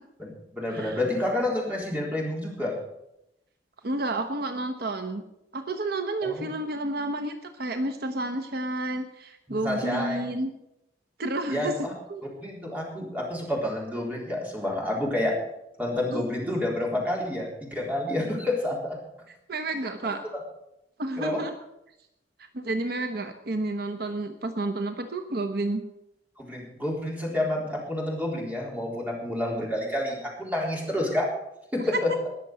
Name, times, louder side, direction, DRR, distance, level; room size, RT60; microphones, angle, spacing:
voice 1, 0.2-2.7 6.2-6.5 9.5-10.2 11.5-11.9 12.4-15.3 15.8-19.0 21.2-21.4 26.4-31.3 31.7-32.1, left 1 dB, 10° right, -3 dB, 3.9 m, -29 dB
voice 2, 3.8-5.2 5.5-10.5 11.2-11.7 12.1-12.2 16.1-16.3 19.5-20.2 21.0-21.5 22.5-25.8, right 2 dB, 60° right, 7 dB, 1.0 m, -30 dB
20.0 x 6.9 x 6.3 m, 0.85 s
head